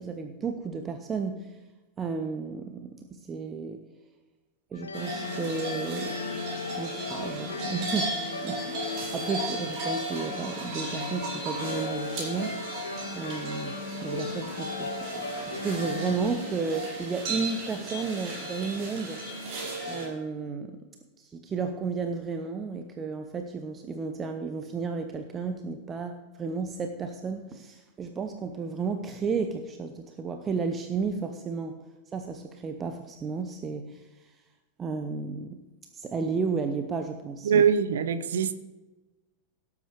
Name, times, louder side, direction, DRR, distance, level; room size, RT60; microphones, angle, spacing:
voice 1, 0.0-1.6 2.0-3.8 4.7-6.2 6.5-12.9 13.1-19.2 19.9-20.8 21.2-31.8 32.1-34.0 34.8-35.6 35.9-37.6, right 4 dB, 20° right, 0.8 m, -33 dB
sound 1, 4.7-16.3, left 4 dB, 70° left, 0.8 m, -37 dB
sound 2, 4.9-20.0, right 2 dB, 40° right, 4.5 m, -35 dB
voice 2, 37.4-38.5, right 7 dB, 60° right, 0.6 m, -23 dB
17.5 x 8.4 x 3.3 m
figure-of-eight pair, 90°, 0 cm